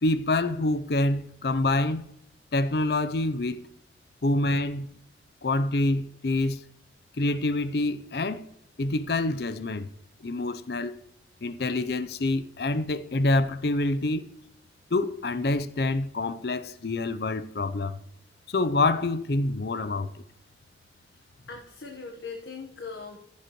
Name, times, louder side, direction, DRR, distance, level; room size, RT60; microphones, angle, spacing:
voice 1, 0.0-2.0 2.5-3.7 4.2-4.9 5.4-6.6 7.2-8.4 8.8-9.9 10.2-11.0 11.4-14.2 14.9-18.0 18.5-20.1, left 2 dB, 60° left, 0.6 m, -26 dB
voice 2, 21.4-23.2, left 4 dB, 80° left, 1.2 m, -40 dB
15.0 x 7.3 x 3.0 m
head